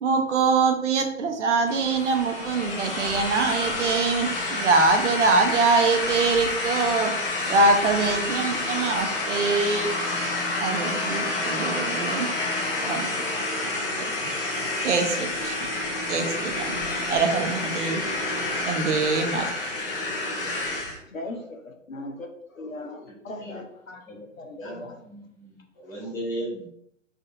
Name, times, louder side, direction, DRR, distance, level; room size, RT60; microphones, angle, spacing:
voice 1, 0.0-7.1 7.5-9.9 10.6-12.3 12.9-13.1 14.2-14.3 14.8-15.5 16.1-16.8 17.1-18.0 18.7-19.5, right 4 dB, 65° right, 5 dB, 0.6 m, -24 dB
sound 1, 1.7-21.0, left 2 dB, 45° left, 0.7 m, -29 dB
voice 2, 21.1-21.6 21.9-22.3 22.6-24.0 24.4-25.0, left 2 dB, 90° left, 3 dB, 0.7 m, -38 dB
voice 3, 24.6-26.7, right 1 dB, 5° left, -6 dB, 0.4 m, -36 dB
3.5 x 2.6 x 2.2 m, 0.72 s
figure-of-eight pair, 120°, 39 cm